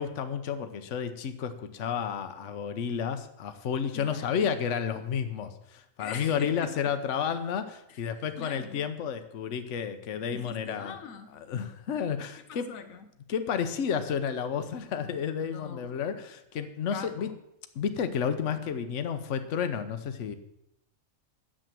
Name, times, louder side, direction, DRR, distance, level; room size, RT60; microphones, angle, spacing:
voice 1, 0.0-11.0 11.3-12.7 13.3-17.3 17.7-20.3, left 7 dB, 65° left, 9 dB, 1.2 m, -31 dB
voice 2, 6.0-6.7 7.9-8.0 8.4-8.8 10.3-11.3 12.5-13.1 15.5-15.9 16.9-17.4, left 6 dB, 80° left, 8 dB, 1.2 m, -42 dB
10.0 x 7.5 x 7.5 m, 0.80 s
omnidirectional pair, 1.4 m